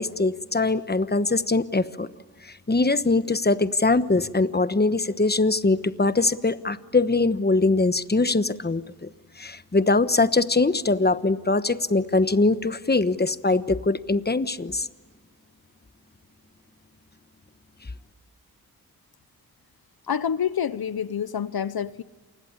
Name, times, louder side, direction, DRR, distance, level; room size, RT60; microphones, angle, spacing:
voice 1, 0.0-2.1 2.4-9.1 9.4-14.9, left 3 dB, 25° left, 13 dB, 1.2 m, -22 dB
voice 2, 20.1-22.0, left 8 dB, 75° left, 16 dB, 0.7 m, -27 dB
28.0 x 20.5 x 9.6 m, 1.4 s
wide cardioid pair, 50°, 37 cm